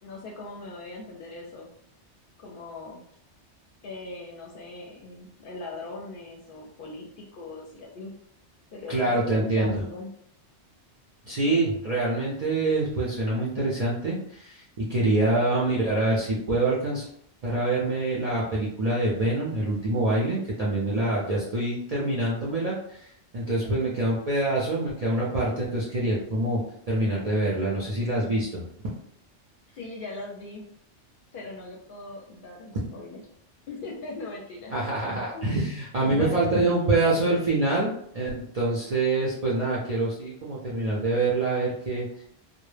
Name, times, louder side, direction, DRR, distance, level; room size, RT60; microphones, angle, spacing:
voice 1, 0.0-1.7 2.4-3.0 3.8-8.1 8.7-10.1 23.6-24.1 29.7-30.6 31.3-33.2 33.7-34.7 35.3-35.5 36.2-36.9, left 3 dB, 60° left, -1 dB, 0.6 m, -40 dB
voice 2, 8.9-9.8 11.3-14.6 14.9-17.1 17.4-26.6 26.9-28.7 34.7-42.2, right 2 dB, 55° right, -6 dB, 0.4 m, -25 dB
2.1 x 2.1 x 3.1 m, 0.69 s
omnidirectional pair, 1.2 m